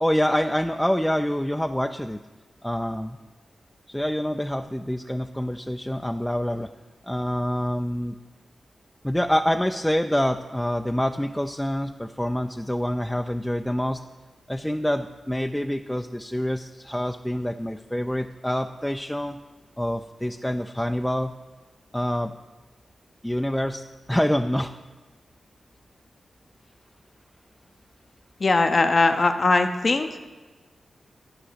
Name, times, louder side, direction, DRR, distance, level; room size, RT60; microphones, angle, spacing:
voice 1, 0.0-2.2 2.6-3.2 3.9-6.7 7.0-8.1 9.0-14.0 14.5-19.4 19.8-21.3 21.9-22.3 23.2-23.8 24.1-24.7, equal, 5° left, 6 dB, 0.4 m, -26 dB
voice 2, 28.4-30.1, left 3 dB, 50° left, 6 dB, 0.6 m, -20 dB
12.5 x 4.9 x 5.0 m, 1.3 s
cardioid pair, 60°, 0 cm